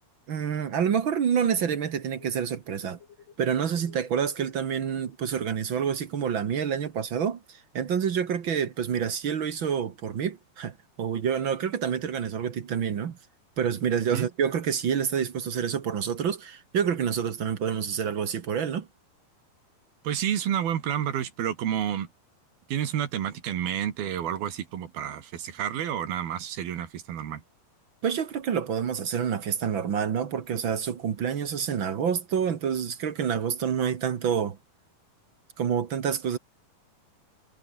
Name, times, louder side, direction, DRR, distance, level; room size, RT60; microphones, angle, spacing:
voice 1, 0.3-3.0 3.4-13.2 13.6-18.9 28.0-34.6 35.6-36.4, right 7 dB, 50° right, 1.5 m, -28 dB
sound 1, 2.2-3.5 3.8-4.7 6.2-6.3 6.9-7.1, left 7 dB, 65° left, 4.4 m, -54 dB
voice 2, 20.0-22.1 22.7-27.4, right 10 dB, 85° right, 4.1 m, -30 dB
omnidirectional pair, 4.2 m